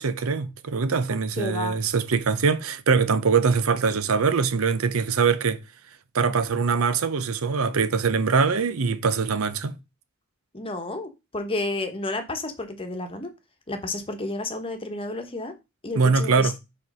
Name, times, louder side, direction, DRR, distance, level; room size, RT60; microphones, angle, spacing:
voice 1, 0.0-5.6 6.1-9.7 16.0-16.5, right 5 dB, 80° right, 0.7 m, -23 dB
voice 2, 1.4-1.8 10.5-13.3 13.7-15.5 15.8-16.6, left 2 dB, 25° left, 1.1 m, -31 dB
5.1 x 4.5 x 5.4 m
head